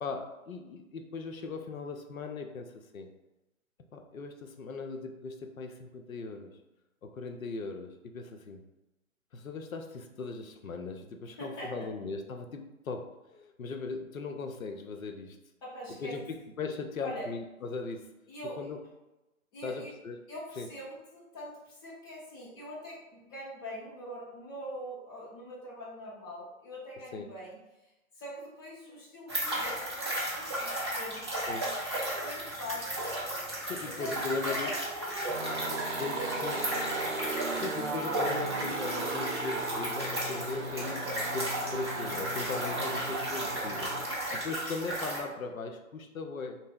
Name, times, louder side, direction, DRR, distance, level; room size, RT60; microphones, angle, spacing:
voice 1, 0.0-3.1 3.9-6.5 7.0-8.6 9.3-15.4 16.0-18.1 18.6-18.8 19.6-20.2 20.6-20.7 27.1-27.3 31.5-31.7 33.6-34.7 36.0-36.6 37.5-43.9 44.4-46.6, left 4 dB, 75° left, 4 dB, 0.6 m, -39 dB
voice 2, 11.2-11.9 15.6-16.2 17.0-17.3 18.3-18.6 19.5-19.9 20.3-27.6 27.8-31.3 31.9-33.5 33.9-36.8 42.4-42.7 43.8-44.3, equal, 15° left, -7 dB, 0.7 m, -43 dB
sound 1, 29.3-45.2, right 1 dB, 20° right, 0.4 m, -35 dB
sound 2, 35.3-44.1, right 2 dB, 55° right, 0.7 m, -36 dB
2.9 x 2.0 x 3.8 m, 0.99 s
figure-of-eight pair, 135°, 42 cm